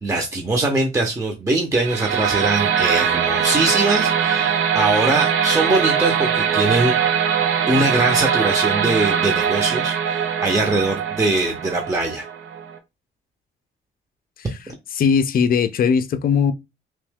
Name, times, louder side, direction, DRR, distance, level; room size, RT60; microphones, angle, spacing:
voice 1, 0.0-7.0 7.7-12.3, right 2 dB, 15° right, 0.8 m, -22 dB
sound 1, 1.7-12.8, right 7 dB, 80° right, 0.7 m, -21 dB
voice 2, 14.9-16.5, left 6 dB, 45° left, 0.5 m, -19 dB
3.0 x 2.7 x 3.5 m
cardioid pair, 90°, 20 cm